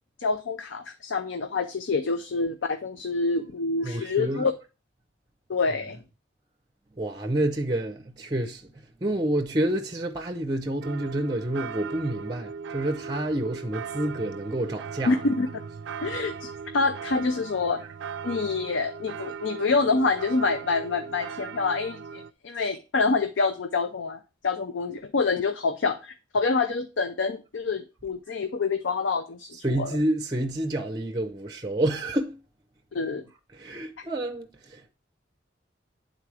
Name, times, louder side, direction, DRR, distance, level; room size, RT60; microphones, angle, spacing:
voice 1, 0.2-4.5 5.5-6.0 15.1-15.5 16.0-17.8 18.2-29.9 32.9-33.2, left 4 dB, 80° left, 0.6 m, -27 dB
voice 2, 3.8-4.5 5.7-5.8 7.0-8.6 9.0-15.3 29.5-32.4 33.5-34.9, right 1 dB, 20° right, 0.5 m, -29 dB
sound 1, 10.8-22.3, right 6 dB, 70° right, 0.3 m, -38 dB
9.7 x 3.9 x 4.8 m
head